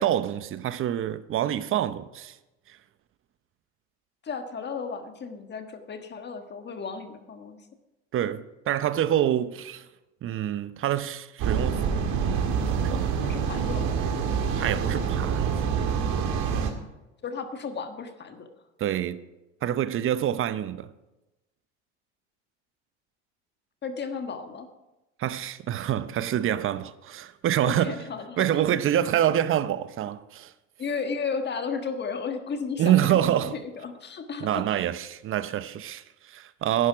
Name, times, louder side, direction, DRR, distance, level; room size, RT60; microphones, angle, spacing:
voice 1, 0.0-2.4 2.7-2.8 8.1-9.8 10.2-11.9 12.2-13.2 14.6-15.6 18.8-19.2 19.6-20.9 25.2-28.0 28.4-30.5 32.8-33.6 34.4-36.9, right 11 dB, 35° right, 0.7 m, -26 dB
voice 2, 4.2-7.6 13.2-13.9 17.2-18.5 23.8-24.7 27.6-28.8 30.8-34.9, left 5 dB, 30° left, 1.5 m, -34 dB
sound 1, 11.4-16.7, right 6 dB, 55° right, 1.9 m, -26 dB
11.5 x 10.5 x 4.9 m
supercardioid pair, 95°, 34 cm